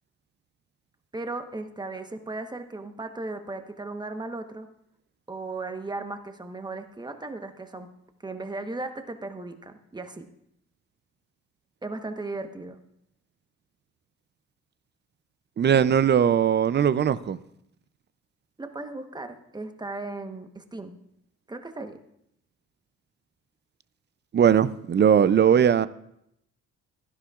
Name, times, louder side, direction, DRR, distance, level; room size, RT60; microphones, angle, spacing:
voice 1, 1.1-4.7 5.3-7.9 8.2-10.3 11.8-12.8 18.6-21.0 21.5-22.0, right 2 dB, 15° right, 7 dB, 1.1 m, -36 dB
voice 2, 15.6-17.4 24.3-25.9, right 8 dB, 35° right, 16 dB, 0.5 m, -20 dB
16.0 x 11.5 x 2.4 m, 0.75 s
cardioid pair, 90°, 30 cm